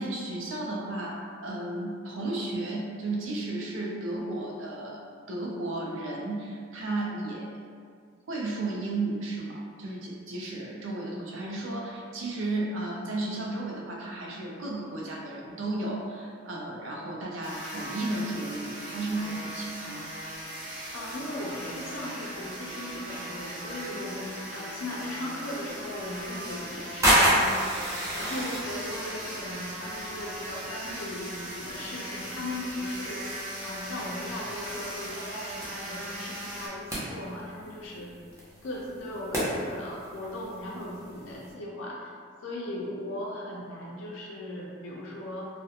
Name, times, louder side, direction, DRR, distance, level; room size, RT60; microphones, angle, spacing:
voice 1, 0.0-7.5 8.3-20.1, right 2 dB, 80° right, -2 dB, 0.4 m, -34 dB
sound 1, 17.4-36.7, right 1 dB, 45° right, 0.8 m, -39 dB
voice 2, 20.9-38.1 38.6-42.1 42.4-45.5, left 1 dB, 80° left, -4 dB, 0.4 m, -38 dB
sound 2, 25.7-41.5, equal, 15° right, 0.5 m, -32 dB
2.3 x 2.1 x 2.7 m, 2.2 s
head